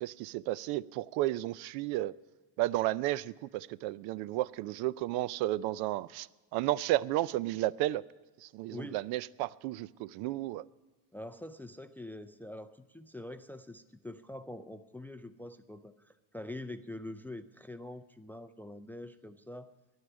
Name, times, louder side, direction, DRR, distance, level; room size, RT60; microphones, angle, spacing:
voice 1, 0.0-2.1 2.6-8.0 8.4-10.6, right 16 dB, 80° right, 0.5 m, -33 dB
voice 2, 11.1-19.7, left 1 dB, 5° left, 0.3 m, -45 dB
10.5 x 9.7 x 9.2 m
cardioid pair, 110°, 38 cm